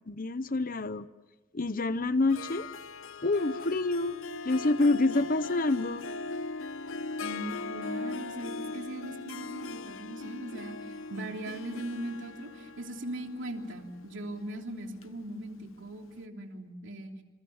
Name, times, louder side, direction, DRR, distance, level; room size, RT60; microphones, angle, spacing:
voice 1, 0.1-1.1 1.5-2.7 3.2-4.2 4.4-6.0, left 2 dB, 45° left, 14 dB, 0.9 m, -27 dB
Harp, 2.3-15.9, left 3 dB, 80° left, 0.9 m, -40 dB
voice 2, 7.2-17.1, right 1 dB, 65° right, 3 dB, 3.2 m, -39 dB
27.5 x 27.5 x 7.2 m, 1.1 s
head